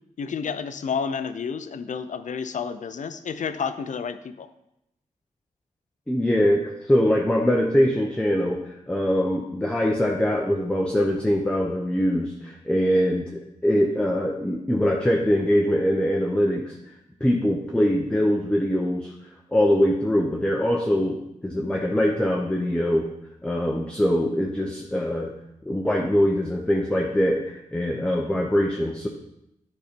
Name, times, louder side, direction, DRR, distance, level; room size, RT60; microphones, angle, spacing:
voice 1, 0.2-4.5, left 6 dB, 60° left, 11 dB, 0.6 m, -30 dB
voice 2, 6.1-16.9 17.2-19.1 19.5-23.1 23.4-25.3 25.6-29.1, equal, 5° left, 0 dB, 0.8 m, -23 dB
9.2 x 4.2 x 5.2 m, 0.83 s
wide cardioid pair, 100°, 14 cm